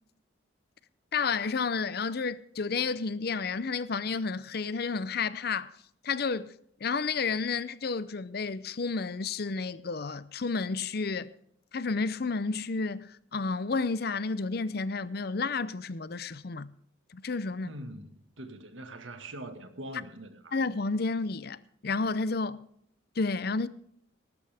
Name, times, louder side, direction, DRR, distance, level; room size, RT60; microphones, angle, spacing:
voice 1, 1.1-5.7 6.0-6.5 6.8-11.3 11.7-16.7 17.1-17.7 20.5-22.7 23.2-23.7, left 4 dB, 55° left, 0.6 m, -31 dB
voice 2, 17.6-20.6, right 1 dB, 75° right, 1.8 m, -43 dB
18.5 x 13.0 x 3.5 m
head